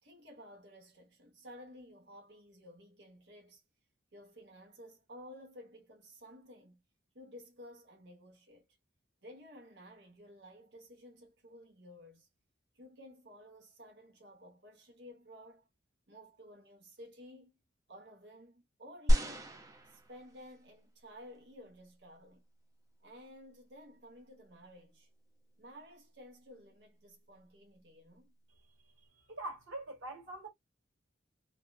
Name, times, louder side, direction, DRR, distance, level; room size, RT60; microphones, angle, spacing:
voice 1, 0.0-3.6 4.1-6.8 7.1-8.7 9.2-12.3 12.7-15.7 16.1-17.5 17.9-19.6 19.9-22.4 23.0-25.1 25.6-28.3, equal, 60° right, 1.1 m, -54 dB
sound 1, 19.1-20.6 21.3-21.4, equal, 20° right, 0.5 m, -30 dB
voice 2, 29.3-30.5, right 2 dB, 85° right, 1.6 m, -43 dB
2.7 x 2.2 x 2.3 m
head